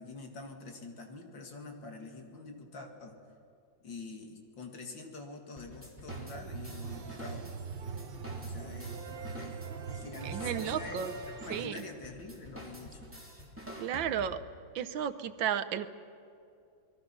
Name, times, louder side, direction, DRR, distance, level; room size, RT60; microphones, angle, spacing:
voice 1, 0.0-3.2 3.8-7.5 8.4-9.0 9.3-13.0, left 3 dB, 65° left, 3 dB, 2.9 m, -46 dB
sound 1, 5.6-14.5, equal, 5° right, 3.0 m, -48 dB
sound 2, 6.1-11.7, right 5 dB, 45° right, 0.7 m, -41 dB
voice 2, 10.2-11.1 11.5-11.8 13.8-14.4 14.7-15.9, right 9 dB, 75° right, 11 dB, 1.5 m, -33 dB
28.5 x 21.0 x 6.0 m, 2.5 s
omnidirectional pair, 2.2 m